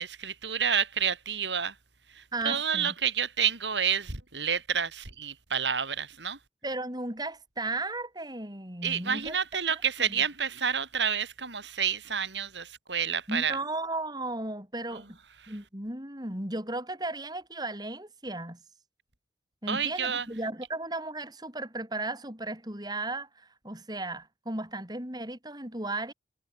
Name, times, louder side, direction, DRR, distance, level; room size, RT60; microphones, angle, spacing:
voice 1, 0.0-1.7 2.1-6.4 8.8-13.6 19.7-20.3, right 7 dB, 90° right, 4.5 m, -29 dB
voice 2, 2.3-2.9 6.6-9.4 9.7-10.2 13.3-15.2 15.5-18.6 19.6-26.1, right 2 dB, 25° right, 7.5 m, -35 dB
head